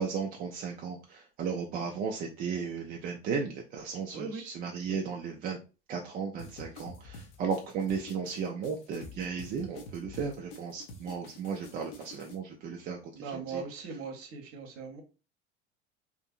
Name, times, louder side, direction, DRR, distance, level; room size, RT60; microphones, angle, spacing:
voice 1, 0.0-5.6 5.9-13.0 13.3-13.6, right 6 dB, 25° right, 1 dB, 0.4 m, -35 dB
voice 2, 4.1-4.4 4.9-5.0 13.1-15.0, right 5 dB, 40° right, 4 dB, 0.9 m, -39 dB
sound 1, 6.4-12.4, left 2 dB, 55° left, 0.7 m, -48 dB
2.9 x 2.5 x 2.4 m, 0.32 s
figure-of-eight pair, 70°, 34 cm